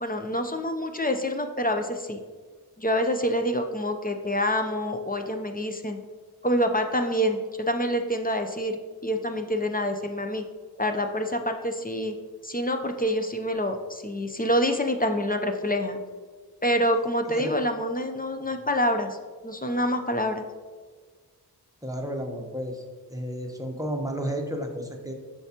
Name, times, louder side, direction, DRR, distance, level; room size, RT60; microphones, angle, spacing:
voice 1, 0.0-2.2 2.8-6.0 6.4-10.4 10.8-12.1 12.4-16.0 16.6-19.2 19.4-20.4, equal, 20° left, 5 dB, 0.5 m, -27 dB
voice 2, 21.8-22.8 23.1-25.1, equal, 10° right, 2 dB, 0.9 m, -32 dB
7.7 x 5.9 x 2.9 m, 1.5 s
wide cardioid pair, 65°, 40 cm